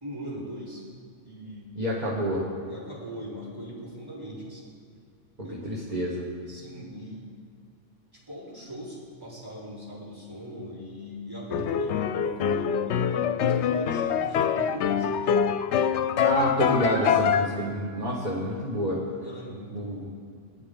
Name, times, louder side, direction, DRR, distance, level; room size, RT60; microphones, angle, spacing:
voice 1, 0.0-0.9 1.2-2.0 2.7-4.7 5.4-5.7 6.5-7.3 8.1-15.3 19.2-20.1, equal, 20° right, -7 dB, 3.8 m, -40 dB
voice 2, 1.8-2.4 5.4-6.2 16.2-19.0 19.7-20.0, equal, 35° right, -5 dB, 1.7 m, -28 dB
sound 1, 11.5-17.5, left 8 dB, 70° left, 0.8 m, -25 dB
17.5 x 10.5 x 3.8 m, 2.3 s
omnidirectional pair, 1.2 m